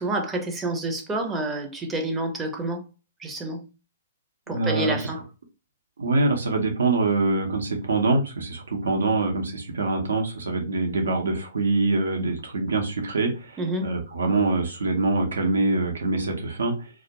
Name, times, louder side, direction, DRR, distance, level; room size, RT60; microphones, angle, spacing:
voice 1, 0.0-2.8 3.2-3.7 4.5-5.2 13.6-13.9, right 2 dB, 15° right, 0.5 m, -28 dB
voice 2, 4.5-5.0 6.0-16.9, right 3 dB, 80° right, 0.8 m, -24 dB
2.4 x 2.1 x 2.8 m
hypercardioid pair, 130°, 0 cm